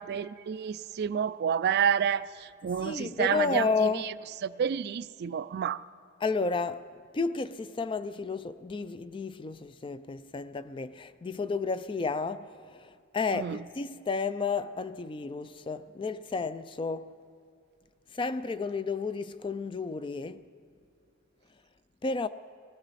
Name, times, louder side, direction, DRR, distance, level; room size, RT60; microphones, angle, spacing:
voice 1, 0.0-3.9 4.4-5.8 13.3-13.6, right 7 dB, 50° right, 0.3 m, -29 dB
voice 2, 2.8-4.0 6.2-6.8 7.1-17.1 18.1-20.4 22.0-22.3, left 4 dB, 25° left, 0.3 m, -32 dB
19.5 x 15.5 x 4.1 m
head